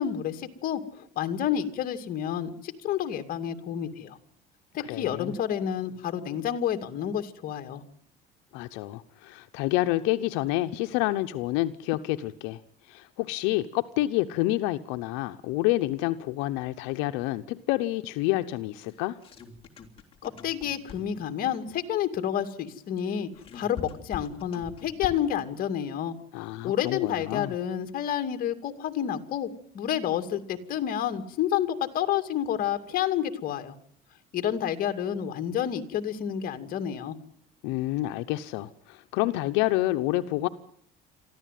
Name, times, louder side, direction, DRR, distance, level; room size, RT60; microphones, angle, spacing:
voice 1, 0.0-4.2 4.7-7.8 20.2-26.2 26.6-33.7 34.3-37.2, left 10 dB, 55° left, 7 dB, 2.4 m, -29 dB
voice 2, 4.8-5.3 8.5-12.6 12.9-19.2 26.3-27.5 37.6-40.5, left 17 dB, 90° left, 8 dB, 0.9 m, -28 dB
sound 1, 18.9-21.3 23.0-25.4, left 6 dB, 30° left, 3.4 m, -43 dB
23.0 x 14.5 x 9.3 m, 0.65 s
cardioid pair, 130°, 18 cm